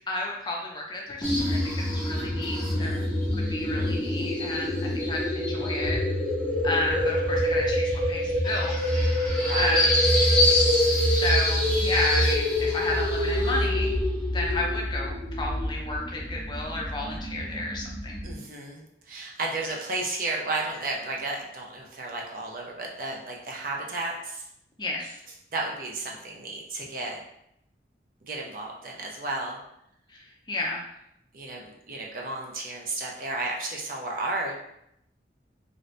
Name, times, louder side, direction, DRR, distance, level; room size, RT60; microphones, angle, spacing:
voice 1, 0.1-3.0 3.3-6.0 6.6-9.1 9.6-10.1 11.1-13.9 14.3-18.2 24.8-25.2 30.1-30.8, left 1 dB, 25° left, -1 dB, 0.4 m, -32 dB
sound 1, 1.2-18.4, left 1 dB, 5° left, 0.9 m, -25 dB
voice 2, 2.5-3.0 9.3-9.9 18.2-24.5 25.5-27.2 28.3-29.6 31.3-34.5, right 2 dB, 50° right, -1 dB, 0.6 m, -33 dB
2.6 x 2.6 x 3.2 m, 0.78 s
head